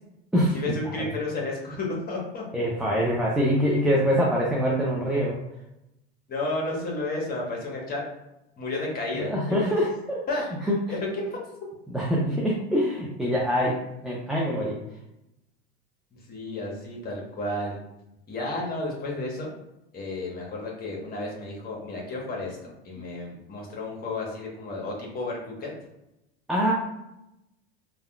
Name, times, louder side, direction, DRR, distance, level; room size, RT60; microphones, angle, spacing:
voice 1, 0.5-2.4 6.3-8.0 8.6-9.7 10.3-10.4 10.9-11.4 16.1-17.8 18.3-19.5 19.9-25.7, left 2 dB, 30° left, -2 dB, 1.1 m, -32 dB
voice 2, 2.5-5.4 9.2-10.2 10.7-10.8 11.9-14.8 26.5-26.7, equal, ahead, -4 dB, 0.4 m, -24 dB
3.3 x 2.3 x 2.2 m, 0.88 s
hypercardioid pair, 90°, 32 cm